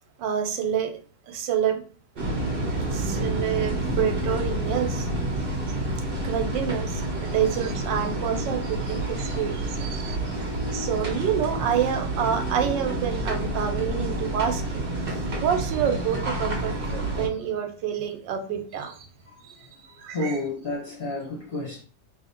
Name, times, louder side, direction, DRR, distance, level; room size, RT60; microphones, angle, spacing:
voice 1, 0.2-0.9 1.3-1.8 2.9-5.1 6.2-10.2 10.7-14.6 15.4-19.0 20.0-20.4, right 8 dB, 85° right, 1.4 m, -27 dB
sound 1, 2.2-17.3, right 1 dB, 40° right, 0.9 m, -29 dB
voice 2, 20.1-21.8, left 2 dB, 35° left, 1.0 m, -31 dB
3.2 x 2.6 x 4.3 m
omnidirectional pair, 1.9 m